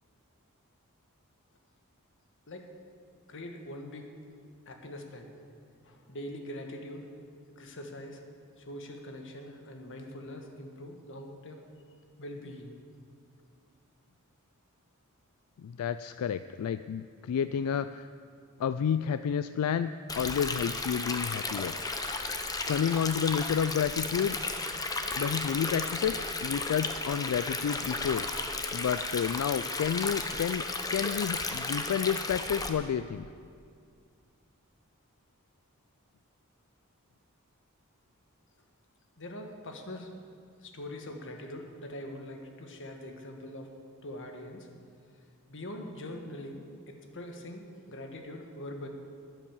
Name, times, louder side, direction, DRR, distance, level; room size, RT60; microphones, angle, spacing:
voice 1, 3.3-4.1 4.6-5.3 5.8-7.1 7.6-8.2 8.6-11.6 12.2-12.7 39.2-40.1 40.6-43.7 44.0-44.7 45.5-48.9, left 1 dB, 60° left, 4 dB, 1.5 m, -43 dB
voice 2, 15.6-18.1 18.6-21.7 22.0-22.1 22.7-24.4 25.2-28.3 28.7-30.6 30.9-33.3, left 8 dB, 85° left, 13 dB, 0.3 m, -30 dB
Stream, 20.1-32.7, left 3 dB, 15° left, 0.8 m, -34 dB
12.0 x 9.9 x 7.2 m, 2.3 s
head